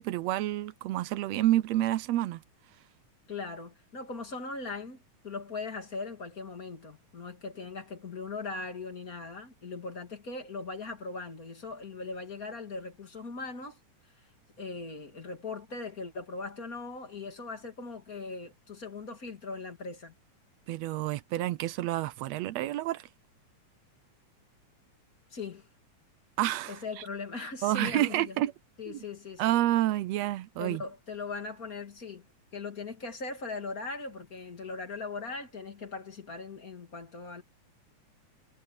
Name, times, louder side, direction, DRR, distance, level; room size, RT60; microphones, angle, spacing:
voice 1, 0.0-2.4 20.7-23.1 26.4-26.8 27.6-28.5 28.9-29.0 29.4-30.8, right 14 dB, 75° right, 1.6 m, -29 dB
voice 2, 3.3-13.8 14.6-20.1 25.3-25.7 26.7-28.4 28.8-29.6 30.6-32.2 32.5-37.4, left 4 dB, 30° left, 2.5 m, -39 dB
omnidirectional pair, 3.5 m